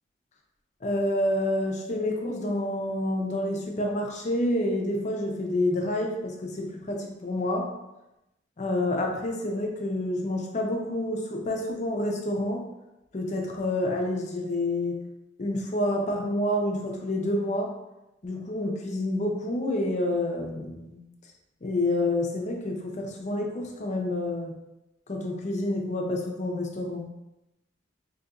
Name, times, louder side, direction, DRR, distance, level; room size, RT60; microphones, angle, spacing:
voice 1, 0.8-7.7 8.6-12.7 13.1-15.0 15.4-17.7 18.2-21.0 21.6-24.6 25.1-27.1, left 1 dB, 40° left, 1 dB, 0.5 m, -28 dB
3.9 x 2.7 x 2.4 m, 0.94 s
head